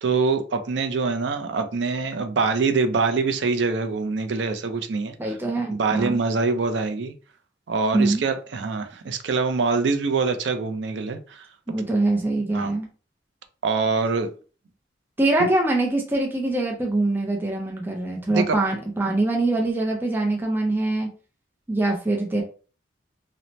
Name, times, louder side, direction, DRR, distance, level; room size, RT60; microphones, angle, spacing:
voice 1, 0.0-5.4 5.7-7.1 7.7-11.5 12.5-12.7 13.6-14.3 15.4-15.5 18.3-18.5, right 4 dB, 80° right, 0.4 m, -24 dB
voice 2, 5.2-6.2 7.9-8.2 11.7-12.9 15.2-21.1 21.7-22.4, right 2 dB, 10° right, 0.4 m, -23 dB
2.7 x 2.0 x 3.0 m
head